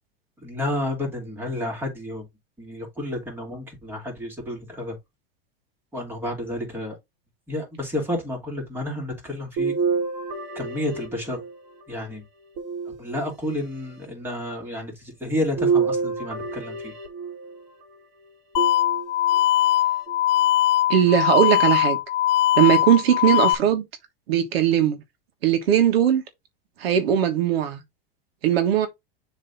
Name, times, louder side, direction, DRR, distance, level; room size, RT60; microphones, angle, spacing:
voice 1, 0.4-2.2 2.6-4.9 5.9-6.9 7.5-9.7 10.5-11.4 11.9-12.2 13.0-16.9, left 1 dB, 5° right, 2.7 m, -30 dB
sound 1, 9.6-11.8 12.6-13.6 15.6-17.6 18.6-19.4 20.1-20.2 21.6-21.7, right 5 dB, 40° right, 1.9 m, -28 dB
sound 2, 18.6-23.6, left 13 dB, 65° left, 0.8 m, -20 dB
voice 2, 20.9-22.0 22.6-23.8 24.3-25.0 25.4-26.2 26.8-27.8 28.4-28.9, right 10 dB, 80° right, 1.5 m, -19 dB
7.1 x 3.3 x 4.1 m
supercardioid pair, 150°, 30 cm